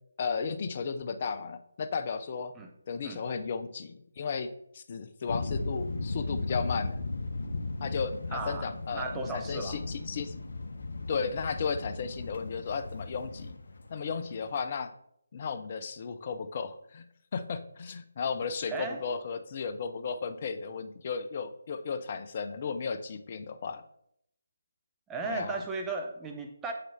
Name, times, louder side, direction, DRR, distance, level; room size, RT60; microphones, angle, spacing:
voice 1, 0.2-2.5 2.9-7.0 7.8-10.3 11.1-13.5 13.9-14.9 15.3-17.1 17.3-23.8 25.2-25.6, left 5 dB, 40° left, 10 dB, 0.6 m, -34 dB
sound 1, 5.3-14.6, left 3 dB, 60° left, 1.0 m, -36 dB
voice 2, 8.3-9.8 18.7-19.0 25.1-26.7, right 3 dB, 10° right, 2 dB, 0.8 m, -36 dB
7.5 x 5.7 x 3.4 m, 0.74 s
figure-of-eight pair, 155°, 0 cm